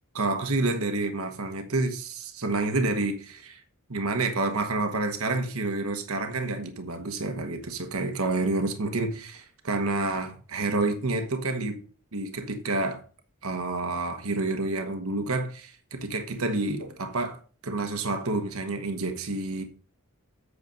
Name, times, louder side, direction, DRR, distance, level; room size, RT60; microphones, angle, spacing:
voice 1, 0.1-3.6 3.9-11.8 12.1-13.0 13.4-19.6, right 2 dB, 70° right, 1.2 m, -29 dB
8.2 x 6.8 x 5.2 m
head